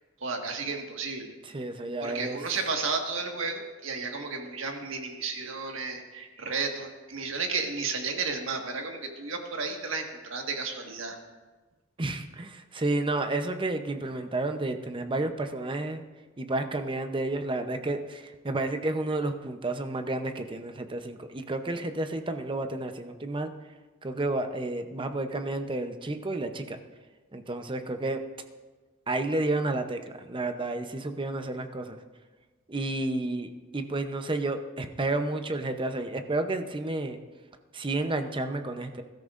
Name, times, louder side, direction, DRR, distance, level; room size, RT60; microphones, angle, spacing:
voice 1, 0.2-1.3 2.0-11.2, right 4 dB, 75° right, 3 dB, 1.7 m, -33 dB
voice 2, 1.4-2.4 12.0-16.0 16.4-23.5 24.0-26.8 27.3-28.2 29.1-32.0 32.7-37.2 37.7-39.0, right 2 dB, 25° right, 7 dB, 0.7 m, -31 dB
21.0 x 13.0 x 2.5 m, 1.3 s
head